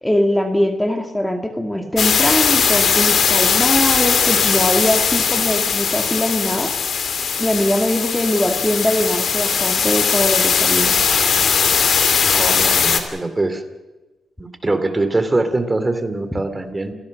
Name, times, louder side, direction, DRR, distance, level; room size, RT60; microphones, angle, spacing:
voice 1, 0.0-6.7 7.4-11.0, left 1 dB, 5° left, 5 dB, 2.2 m, -21 dB
sound 1, 2.0-13.0, left 6 dB, 60° left, 2.6 m, -18 dB
voice 2, 12.2-13.6 14.4-16.9, right 2 dB, 20° right, 10 dB, 2.6 m, -22 dB
28.5 x 17.0 x 6.5 m, 1.2 s
cardioid pair, 85°, 0 cm